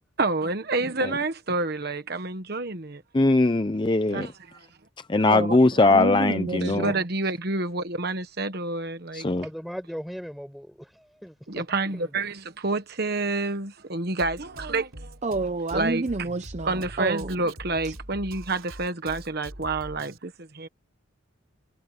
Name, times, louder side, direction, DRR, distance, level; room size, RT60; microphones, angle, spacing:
voice 1, 0.2-3.0 4.1-4.7 6.6-9.3 11.5-15.2 15.7-16.3 16.6-20.7, right 3 dB, 50° right, 1.2 m, -29 dB
voice 2, 3.1-4.3 5.1-6.9 9.1-9.4, left 2 dB, 20° left, 0.5 m, -20 dB
voice 3, 5.3-5.6 5.9-7.0 15.2-17.3 17.8-17.9, right 3 dB, 35° right, 0.6 m, -29 dB
voice 4, 9.4-11.6 11.9-12.2, equal, ahead, 6.1 m, -38 dB
Drum kit, 14.2-20.2, right 1 dB, 75° right, 3.5 m, -43 dB
head